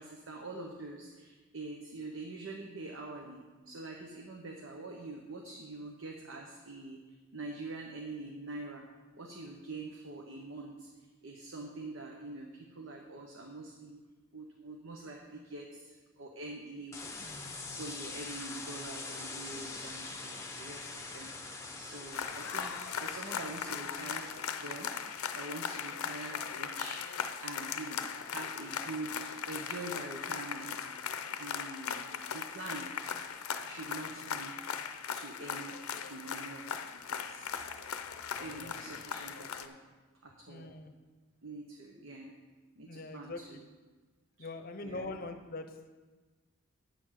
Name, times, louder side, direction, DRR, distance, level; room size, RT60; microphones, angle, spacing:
voice 1, 0.0-8.9 9.1-10.9 11.2-14.0 14.3-17.4 17.8-24.3 24.6-24.9 25.3-32.0 32.3-32.9 33.7-34.5 35.1-35.8 36.1-37.8 38.4-39.8 40.2-40.8 41.4-42.3 42.8-43.6 44.4-45.1, right 2 dB, 65° right, 1 dB, 1.0 m, -45 dB
sound 1, 16.9-25.1, left 3 dB, 15° left, 0.8 m, -44 dB
sound 2, 22.1-39.7, left 7 dB, 90° left, 0.6 m, -39 dB
voice 2, 38.4-38.7 40.5-40.9 42.8-43.6 44.4-45.7, left 2 dB, 45° left, 7 dB, 0.8 m, -42 dB
9.1 x 7.0 x 5.8 m, 1.3 s
head